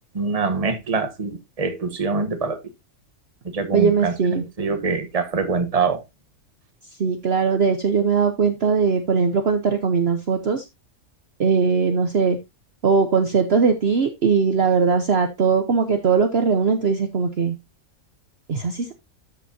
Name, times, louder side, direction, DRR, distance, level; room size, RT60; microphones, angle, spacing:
voice 1, 0.1-2.6 3.4-6.0, right 4 dB, 25° right, 1.1 m, -24 dB
voice 2, 3.7-4.4 7.0-10.6 11.4-12.4 12.8-17.5 18.5-18.9, right 5 dB, 50° right, 1.0 m, -20 dB
13.0 x 5.3 x 2.7 m
omnidirectional pair, 1.5 m